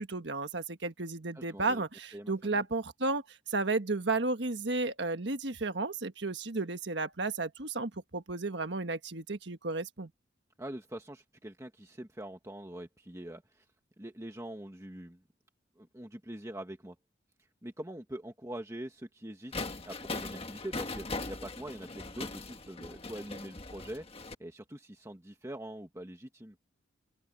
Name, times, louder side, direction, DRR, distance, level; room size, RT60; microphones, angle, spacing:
voice 1, 0.0-10.1, right 3 dB, 60° right, 1.5 m, -33 dB
voice 2, 1.3-1.8 2.1-2.6 10.6-13.6 14.0-15.2 15.8-16.9 17.6-24.1 24.4-26.6, right 1 dB, 15° right, 1.4 m, -44 dB
sound 1, 19.5-24.3, left 3 dB, 30° left, 1.6 m, -40 dB
open air
head